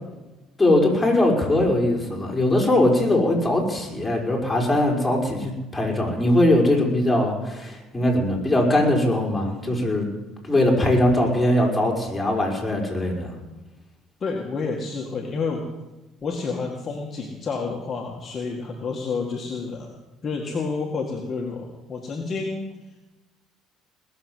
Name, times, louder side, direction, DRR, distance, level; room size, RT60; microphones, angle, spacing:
voice 1, 0.6-10.1 10.4-13.3, left 1 dB, 15° left, -1 dB, 5.2 m, -21 dB
voice 2, 14.2-15.7 16.2-22.7, left 4 dB, 40° left, 0 dB, 2.1 m, -29 dB
20.0 x 7.1 x 7.9 m, 1.1 s
supercardioid pair, 75°, 0 cm